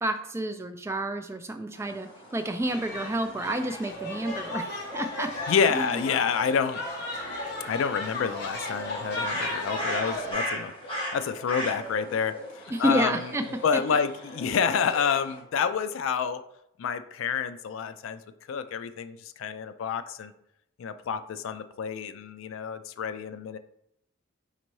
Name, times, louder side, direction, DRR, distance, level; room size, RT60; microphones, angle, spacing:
voice 1, 0.0-5.3 5.7-6.0 12.7-13.4, right 1 dB, 15° right, 7 dB, 0.3 m, -30 dB
sound 1, 1.7-15.4, equal, 25° left, 1.3 m, -39 dB
sound 2, 2.6-10.3, left 2 dB, 55° left, 1.1 m, -36 dB
voice 2, 5.5-6.8 7.7-13.3 13.6-16.4 16.8-18.2 18.5-20.3 20.8-23.6, left 6 dB, 75° left, 11 dB, 0.3 m, -28 dB
4.4 x 3.9 x 3.1 m, 0.77 s
head